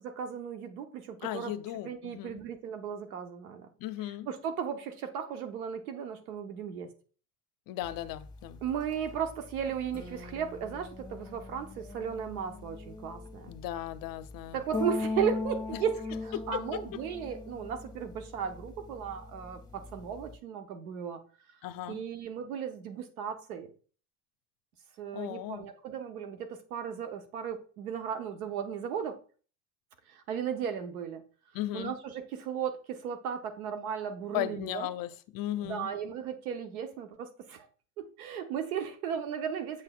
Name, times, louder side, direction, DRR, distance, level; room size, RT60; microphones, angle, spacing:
voice 1, 0.2-1.5 1.8-3.7 4.3-6.9 8.6-13.5 14.5-16.0 16.2-21.2 21.9-23.7 25.0-29.2 30.1-31.2 31.7-34.9 35.6-37.7 38.0-39.8, right 8 dB, 90° right, 1.0 m, -35 dB
voice 2, 1.2-2.4 3.8-4.3 7.7-8.6 13.5-14.6 15.7-15.8 16.3-16.8 21.6-22.0 25.1-25.7 31.5-31.9 34.3-35.9, left 14 dB, 55° left, 0.6 m, -36 dB
sound 1, 7.8-20.4, left 3 dB, 10° left, 1.4 m, -40 dB
7.7 x 5.7 x 2.3 m
hypercardioid pair, 80°, 42 cm